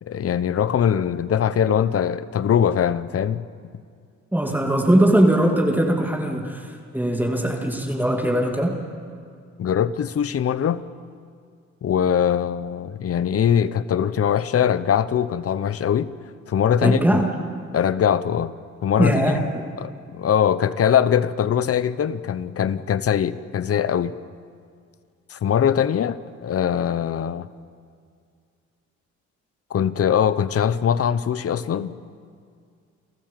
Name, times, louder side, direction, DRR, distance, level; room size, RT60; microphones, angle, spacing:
voice 1, 0.0-3.4 9.6-10.9 11.8-16.1 16.5-17.0 17.7-18.5 18.8-19.1 19.8-24.2 25.3-27.5 29.7-31.9, left 8 dB, 50° left, 15 dB, 0.9 m, -22 dB
voice 2, 4.3-8.7 16.8-17.3 19.0-19.6, right 1 dB, 5° right, 0 dB, 2.6 m, -20 dB
29.0 x 14.5 x 7.6 m, 2.2 s
cardioid pair, 90°, 30 cm